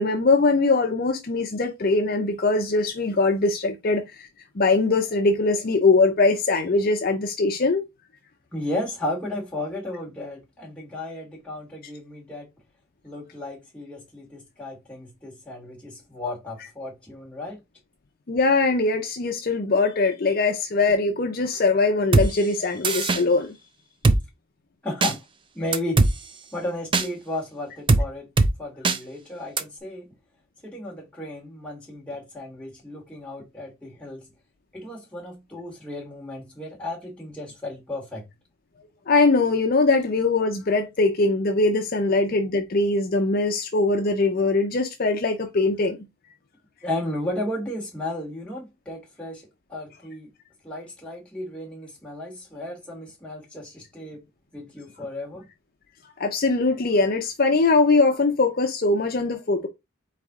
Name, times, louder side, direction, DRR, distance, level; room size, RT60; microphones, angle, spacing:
voice 1, 0.0-4.3 4.6-7.9 18.3-23.5 39.1-46.0 56.2-59.7, left 3 dB, 45° left, 0.5 m, -21 dB
voice 2, 8.5-12.5 13.0-17.6 24.8-25.2 25.5-26.0 26.5-28.3 28.6-30.1 30.6-34.3 34.7-38.2 46.8-50.3 50.6-54.2 54.5-55.4, left 1 dB, 5° left, 1.4 m, -34 dB
Drum kit, 22.1-22.3 22.8-23.2 24.0-24.2 25.0-25.1 25.7-26.1 26.9-27.1 27.9-28.0 28.4-28.5 28.8-29.0 29.6-29.7, right 3 dB, 25° right, 0.4 m, -18 dB
4.1 x 3.3 x 3.5 m
head